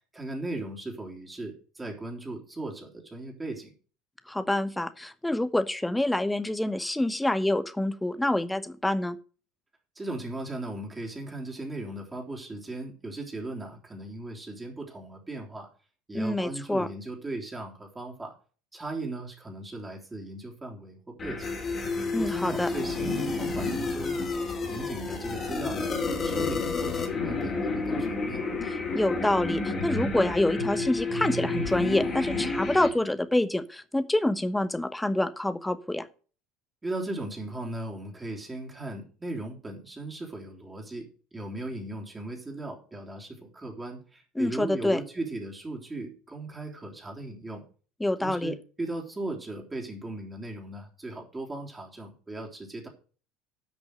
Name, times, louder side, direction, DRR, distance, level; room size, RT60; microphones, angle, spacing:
voice 1, 0.1-3.7 10.0-15.7 16.1-18.3 18.7-21.5 22.1-24.2 24.7-25.9 26.2-28.4 36.8-41.1 41.3-47.6 48.2-52.9, right 2 dB, 15° right, -1 dB, 3.6 m, -37 dB
voice 2, 4.3-9.2 16.1-16.9 22.1-22.7 28.7-36.1 44.3-45.0 48.0-48.5, left 1 dB, 5° left, 12 dB, 1.1 m, -27 dB
sound 1, 21.2-32.9, left 3 dB, 30° left, 3.4 m, -30 dB
11.0 x 6.1 x 6.5 m, 0.38 s
figure-of-eight pair, 70°, 0 cm